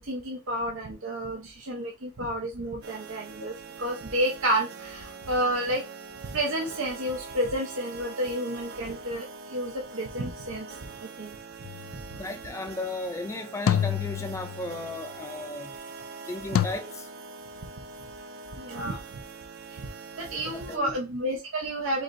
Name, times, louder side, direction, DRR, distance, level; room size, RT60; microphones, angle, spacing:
voice 1, 0.0-5.8 6.2-11.4 11.9-12.2 18.5-19.2 19.7-19.9 20.2-22.0, right 1 dB, 85° right, 0.9 m, -31 dB
sound 1, 2.8-20.8, right 4 dB, 50° right, 0.6 m, -43 dB
sound 2, 11.6-12.0 13.7-14.9 16.5-16.7, left 9 dB, 90° left, 0.4 m, -27 dB
voice 2, 12.1-15.8 16.3-17.1 20.5-21.0, left 2 dB, 15° left, 0.3 m, -35 dB
4.9 x 3.9 x 2.6 m
head